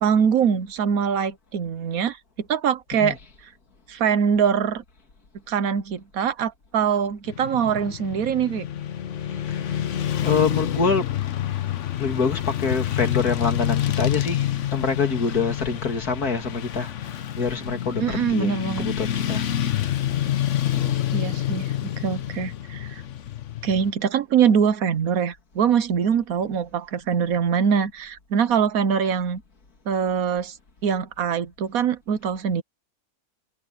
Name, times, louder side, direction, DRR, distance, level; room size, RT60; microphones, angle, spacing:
voice 1, 0.0-3.2 3.9-4.8 5.5-8.6 18.0-18.9 21.1-23.0 23.6-29.4 29.9-30.5 30.8-32.6, right 7 dB, 70° right, 1.4 m, -23 dB
Motorcycle / Traffic noise roadway noise, 7.3-23.9, left 11 dB, 60° left, 1.1 m, -27 dB
voice 2, 9.5-11.1 12.0-19.4 19.8-21.2, left 5 dB, 80° left, 2.9 m, -27 dB
omnidirectional pair, 1.6 m